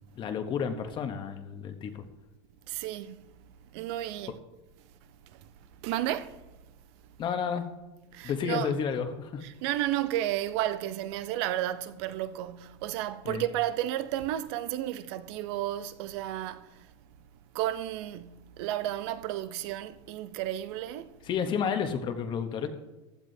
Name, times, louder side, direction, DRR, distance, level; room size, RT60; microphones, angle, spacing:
voice 1, 0.2-2.0 7.2-7.6 8.2-9.4 13.2-13.4 21.2-22.7, left 7 dB, 30° left, 0.9 m, -31 dB
voice 2, 2.7-3.3 3.7-4.3 5.3-5.5 5.8-6.4 8.1-8.8 9.6-16.9 17.5-21.1, right 13 dB, 65° right, 0.7 m, -32 dB
15.0 x 11.5 x 2.7 m
supercardioid pair, 140°, 15 cm